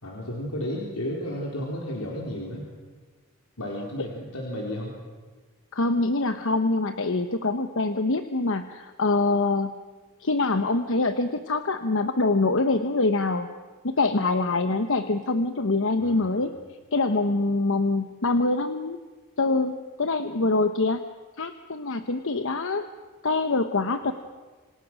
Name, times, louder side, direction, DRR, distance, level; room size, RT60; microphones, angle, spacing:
voice 1, 0.0-2.7 3.6-4.9 16.0-16.5 24.0-24.1, left 1 dB, 80° left, -2 dB, 4.4 m, -33 dB
voice 2, 5.7-9.8 10.2-13.5 13.8-16.5 16.9-19.0 19.4-21.0 21.4-22.8 23.2-24.1, left 3 dB, 65° left, 8 dB, 1.0 m, -24 dB
27.0 x 26.0 x 6.3 m, 1.4 s
head